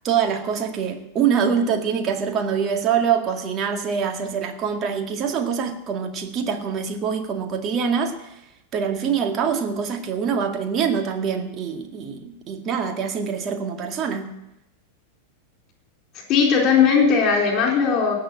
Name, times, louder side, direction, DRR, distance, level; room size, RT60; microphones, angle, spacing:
voice 1, 0.0-8.4 8.7-14.3, right 7 dB, 30° right, 4 dB, 2.1 m, -24 dB
voice 2, 16.3-18.1, left 6 dB, 35° left, 1 dB, 4.1 m, -18 dB
18.0 x 6.9 x 8.9 m, 0.88 s
figure-of-eight pair, 90°, 0 cm